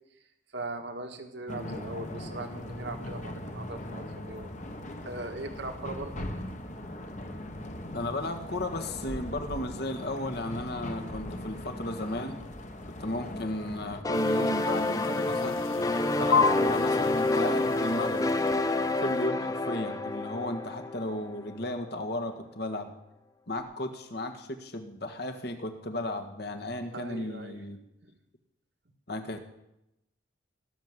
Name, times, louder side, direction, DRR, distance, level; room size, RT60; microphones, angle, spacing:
voice 1, 0.5-4.5 4.8-6.3 26.9-27.6, right 2 dB, 60° right, 5 dB, 1.8 m, -40 dB
sound 1, 1.5-14.0, left 1 dB, 35° left, 1.5 m, -39 dB
voice 2, 7.9-12.4 12.9-15.6 16.2-18.3 19.0-22.9 23.5-27.8 29.1-29.4, left 1 dB, 55° left, 5 dB, 1.8 m, -34 dB
sound 2, 14.0-21.5, left 2 dB, 15° left, 0.7 m, -28 dB
sound 3, 14.1-19.3, left 5 dB, 85° left, 0.6 m, -33 dB
19.0 x 7.5 x 9.8 m, 0.87 s
head